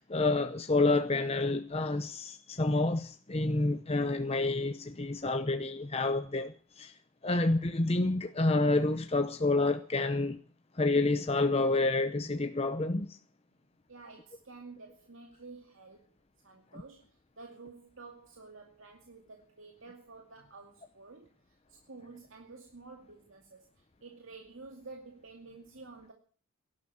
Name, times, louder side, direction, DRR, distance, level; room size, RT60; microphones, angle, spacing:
voice 1, 0.0-7.0 7.2-10.4 10.7-13.2 16.7-16.8, left 2 dB, 30° left, 0.8 m, -29 dB
voice 2, 13.9-16.1 16.4-23.7 24.0-26.1, right 3 dB, 70° right, 2.4 m, -51 dB
17.5 x 12.0 x 6.2 m
head